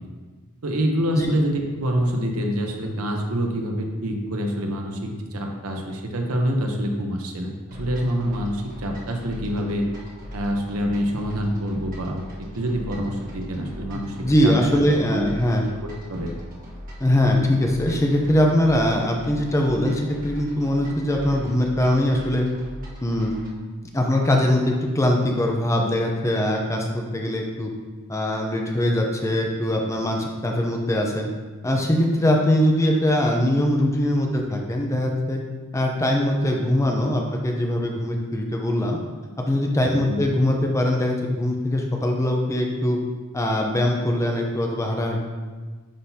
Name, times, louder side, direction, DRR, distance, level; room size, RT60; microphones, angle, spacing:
voice 1, 0.6-7.5 7.8-9.9 10.3-12.2 12.5-14.8 15.1-15.3 15.8-16.3 39.9-40.2, equal, 70° right, 2 dB, 0.8 m, -26 dB
sound 1, 7.7-23.6, equal, 40° right, 1.3 m, -40 dB
voice 2, 14.2-15.7 17.0-22.5 23.0-23.3 23.9-27.7 28.1-31.3 31.6-35.4 35.7-39.0 39.4-43.0 43.3-45.2, left 1 dB, 15° left, 1 dB, 0.6 m, -22 dB
10.0 x 3.9 x 2.8 m, 1.4 s
head